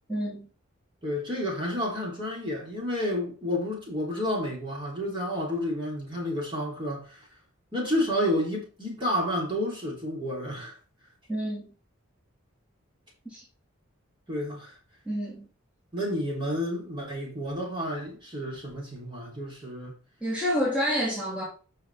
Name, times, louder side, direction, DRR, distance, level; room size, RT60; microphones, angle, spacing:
voice 1, 0.1-0.5 11.3-11.6 13.2-13.4 15.1-15.5 20.2-21.4, equal, 5° right, 3.0 m, -28 dB
voice 2, 1.0-7.3 7.7-10.8 14.3-14.7 15.9-20.0, left 1 dB, 25° right, 3.7 m, -30 dB
9.2 x 5.9 x 3.6 m
head